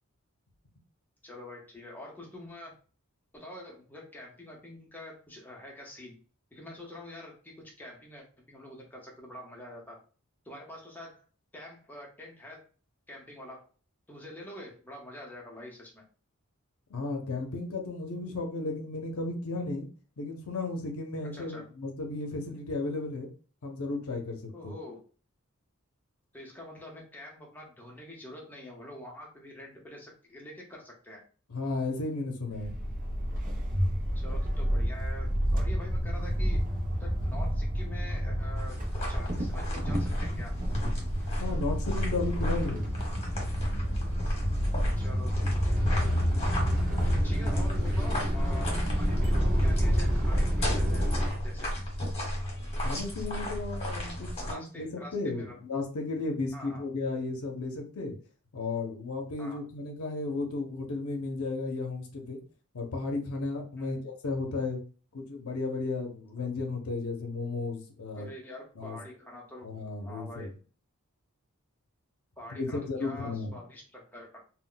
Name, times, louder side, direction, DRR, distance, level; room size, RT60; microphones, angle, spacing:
voice 1, 1.2-2.8 3.3-6.2 6.5-10.0 10.4-11.2 11.5-12.7 13.1-13.6 14.1-16.0 21.3-21.6 24.5-25.0 26.3-31.2 34.1-36.6 37.0-40.6 45.0-46.2 47.1-51.7 54.1-55.6 56.5-56.9 59.4-59.6 63.8-64.1 68.1-69.7 70.0-70.5 72.4-74.4, left 1 dB, 10° left, -2 dB, 0.8 m, -46 dB
voice 2, 16.9-19.9 20.2-23.3 23.6-24.7 31.5-32.8 41.4-42.9 46.8-47.2 52.8-58.2 58.5-62.4 62.7-64.8 65.1-68.3 68.8-69.0 69.6-70.5 72.5-73.6, left 3 dB, 90° left, 3 dB, 0.6 m, -34 dB
sound 1, 32.5-51.3, equal, 40° right, 0.6 m, -29 dB
sound 2, 38.6-54.5, equal, 30° left, 1.1 m, -34 dB
sound 3, 45.8-51.5, equal, 85° right, 0.9 m, -43 dB
2.2 x 2.1 x 3.8 m, 0.38 s
head